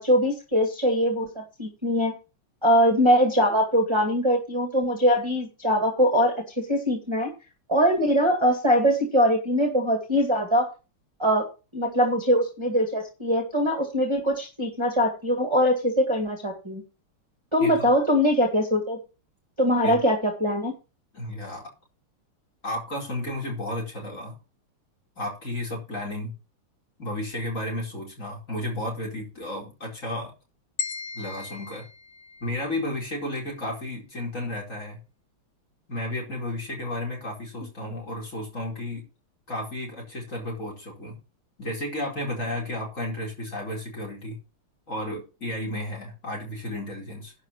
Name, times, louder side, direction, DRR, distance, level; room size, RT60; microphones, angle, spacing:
voice 1, 0.0-2.1 2.6-7.3 7.7-10.7 11.2-11.5 11.7-16.8 17.5-19.0 19.6-20.7, equal, 15° right, 3 dB, 2.0 m, -22 dB
voice 2, 21.1-21.7 22.6-24.3 25.2-26.4 27.0-30.3 31.1-31.8 32.4-35.0 35.9-39.1 39.5-41.2 41.6-44.4 44.9-47.3, left 1 dB, 35° left, 0 dB, 4.9 m, -33 dB
sound 1, 30.8-33.0, left 6 dB, 65° left, 1.8 m, -37 dB
11.5 x 4.8 x 7.3 m, 0.31 s
omnidirectional pair, 2.4 m